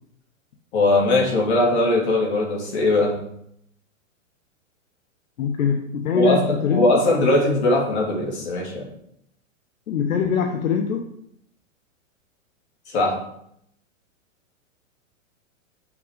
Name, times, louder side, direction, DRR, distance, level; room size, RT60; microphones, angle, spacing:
voice 1, 0.7-3.2 6.1-8.9 12.9-13.2, left 2 dB, 55° left, -1 dB, 3.1 m, -20 dB
voice 2, 5.4-7.0 9.9-11.1, left 7 dB, 75° left, 4 dB, 1.1 m, -23 dB
6.6 x 6.1 x 5.2 m, 0.73 s
hypercardioid pair, 165°, 41 cm